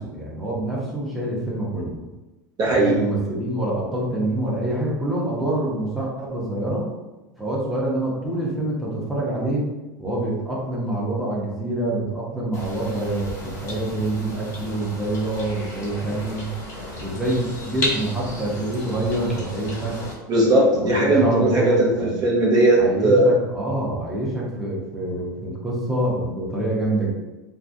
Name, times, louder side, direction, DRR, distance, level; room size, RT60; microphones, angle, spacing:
voice 1, 0.0-2.0 2.8-6.9 7.4-9.7 10.0-16.5 17.0-20.0 20.7-22.2 22.8-27.1, right 1 dB, ahead, -6 dB, 0.8 m, -26 dB
voice 2, 2.6-3.0 20.3-21.9 22.2-23.3, right 1 dB, 40° right, -4 dB, 0.8 m, -18 dB
sound 1, 12.5-20.1, left 1 dB, 30° left, 1.2 m, -33 dB
2.2 x 2.2 x 2.7 m, 1.1 s
hypercardioid pair, 90°, 10 cm